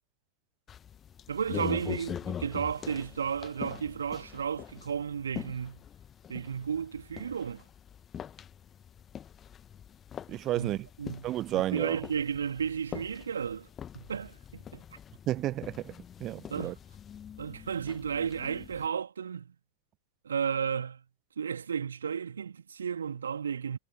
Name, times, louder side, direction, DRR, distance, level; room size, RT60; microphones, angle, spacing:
sound 1, 0.7-18.9, left 9 dB, 25° left, 1.4 m, -44 dB
voice 1, 1.3-5.8 6.3-7.6 10.5-13.7 13.9-14.8 16.5-16.8 17.4-19.5 20.2-21.0 21.4-23.8, right 7 dB, 70° right, 2.9 m, -33 dB
voice 2, 10.3-10.9 11.2-12.0 15.3-16.7, right 14 dB, 35° right, 0.8 m, -32 dB
figure-of-eight pair, 90°, 0 cm